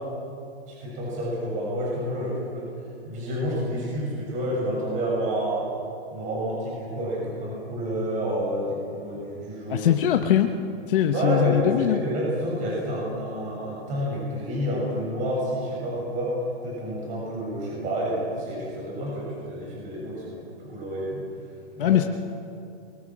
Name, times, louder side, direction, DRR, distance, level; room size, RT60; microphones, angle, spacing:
voice 1, 0.7-2.7 3.1-5.7 6.1-9.9 11.1-21.2 21.8-22.0, equal, 25° right, -4 dB, 7.1 m, -29 dB
voice 2, 9.7-10.5 10.9-12.0 21.8-22.0, left 11 dB, 55° left, 5 dB, 1.1 m, -21 dB
26.0 x 22.5 x 6.2 m, 2.5 s
hypercardioid pair, 160°, 33 cm